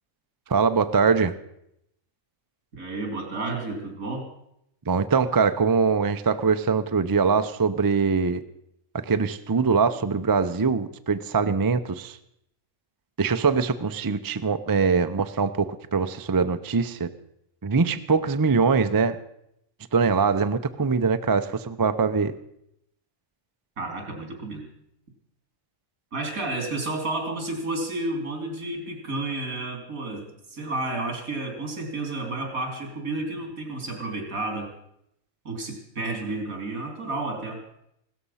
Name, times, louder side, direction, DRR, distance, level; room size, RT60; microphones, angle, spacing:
voice 1, 0.5-1.3 4.9-8.4 8.9-12.2 13.2-17.1 17.6-19.2 19.9-22.3, right 5 dB, 30° right, 10 dB, 0.4 m, -23 dB
voice 2, 2.7-4.3 23.8-24.7 26.1-34.7 35.5-37.6, right 2 dB, 85° right, 3 dB, 3.6 m, -31 dB
16.5 x 13.5 x 5.6 m, 0.77 s
omnidirectional pair, 1.4 m